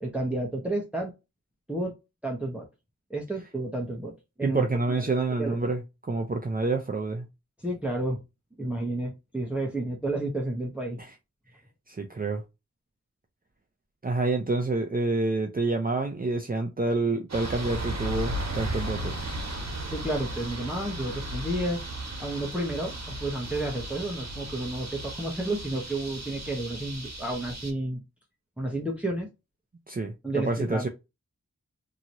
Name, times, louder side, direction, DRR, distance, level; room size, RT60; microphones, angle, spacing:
voice 1, 0.0-1.1 1.7-1.9 2.2-2.7 3.1-4.1 4.4-4.7 5.4-5.6 7.6-8.2 8.6-11.0 19.9-21.8 22.2-28.0 28.6-29.3 30.2-30.9, right 1 dB, 5° right, 0.9 m, -31 dB
voice 2, 4.4-7.3 11.9-12.4 14.0-19.1 29.9-30.9, right 3 dB, 30° right, 0.6 m, -28 dB
sound 1, 17.3-27.7, right 1 dB, 65° right, 1.2 m, -35 dB
2.9 x 2.9 x 2.5 m
wide cardioid pair, 50°, 29 cm